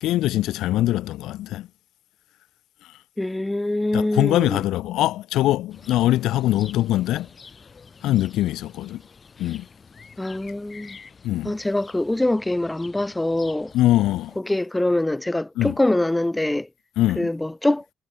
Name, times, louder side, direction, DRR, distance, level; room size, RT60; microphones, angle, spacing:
voice 1, 0.0-1.7 3.9-7.3 8.0-9.0 9.4-9.7 11.2-11.5 13.7-14.4 15.6-15.7 17.0-17.3, left 15 dB, 70° left, 0.5 m, -22 dB
voice 2, 3.2-4.6 10.2-11.0 11.4-13.7 14.4-16.7 17.2-17.8, left 1 dB, 15° left, 0.6 m, -24 dB
sound 1, 5.7-14.4, left 5 dB, 40° left, 4.8 m, -48 dB
hypercardioid pair, 50°, 0 cm